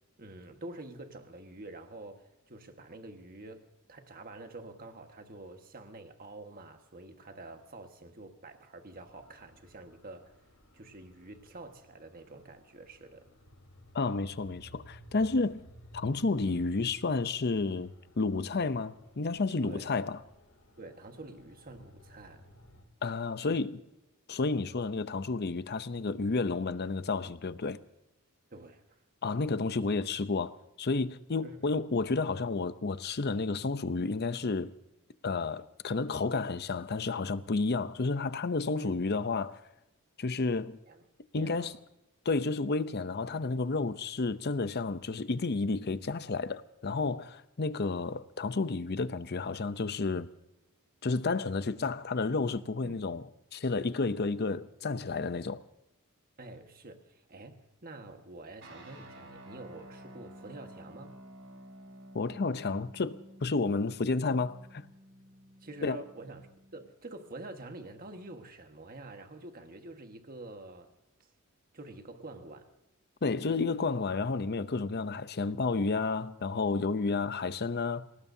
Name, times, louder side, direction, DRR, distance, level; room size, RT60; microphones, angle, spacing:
voice 1, 0.2-10.4 10.7-13.3 19.6-19.9 20.8-22.4 28.5-29.0 31.4-31.8 38.8-39.1 40.9-41.0 41.3-41.8 52.8-53.0 56.4-61.2 65.6-70.9 71.2-71.3 71.7-72.7, right 2 dB, 40° right, 1.6 m, -47 dB
sound 1, 8.9-22.8, equal, 85° left, 3.8 m, -57 dB
voice 2, 13.9-15.6 15.9-20.2 23.0-23.8 24.3-27.8 29.2-34.7 35.2-39.6 40.2-40.8 41.3-41.7 42.2-50.3 51.0-55.6 62.1-64.9 65.8-66.0 73.2-78.1, left 3 dB, 50° left, 0.7 m, -31 dB
sound 2, 58.6-66.9, equal, 60° right, 4.8 m, -52 dB
27.5 x 18.0 x 2.8 m
head